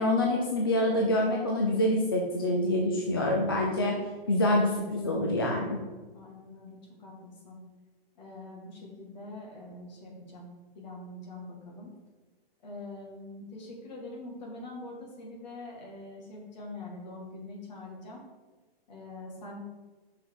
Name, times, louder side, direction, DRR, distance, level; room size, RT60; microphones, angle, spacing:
voice 1, 0.0-4.0 4.3-5.8, left 1 dB, 25° left, -1 dB, 0.4 m, -26 dB
voice 2, 6.1-7.7 8.2-10.5 10.7-11.9 12.6-18.2 18.9-19.6, left 2 dB, 45° left, -2 dB, 2.0 m, -44 dB
5.6 x 5.2 x 4.8 m, 1.3 s
hypercardioid pair, 175°, 31 cm